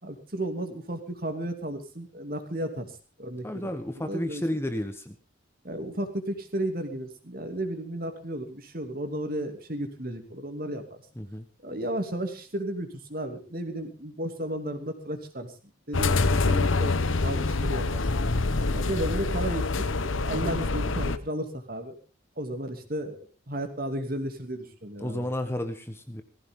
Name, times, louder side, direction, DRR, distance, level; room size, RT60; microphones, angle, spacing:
voice 1, 0.0-2.9 3.2-4.4 5.6-11.0 11.6-15.5 15.9-18.2 18.7-21.9 22.4-23.2 23.5-25.3, right 1 dB, 45° right, 6 dB, 2.8 m, -34 dB
voice 2, 3.4-5.1 11.2-11.4 18.5-18.8 25.0-26.2, left 1 dB, 10° left, 8 dB, 1.2 m, -32 dB
sound 1, 15.9-21.2, left 3 dB, 85° left, 1.1 m, -26 dB
19.0 x 15.5 x 3.8 m, 0.34 s
head